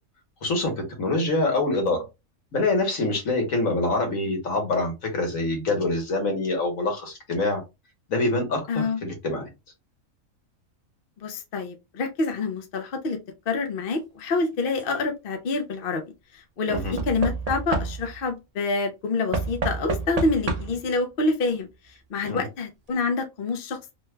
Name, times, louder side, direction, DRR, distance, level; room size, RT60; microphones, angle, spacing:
voice 1, 0.4-2.0 2.5-7.6 8.1-9.5 16.7-16.9 22.3-22.5, left 2 dB, 70° left, 1.5 m, -25 dB
voice 2, 8.7-9.0 11.2-13.2 13.5-16.0 16.3-21.7 22.1-23.9, left 3 dB, 50° left, 0.7 m, -27 dB
Knock / Wood, 14.5-15.0 16.7-18.3 19.3-20.9 22.0-22.1 22.3-22.4, right 4 dB, 50° right, 0.4 m, -29 dB
3.2 x 2.3 x 3.2 m
omnidirectional pair, 1.4 m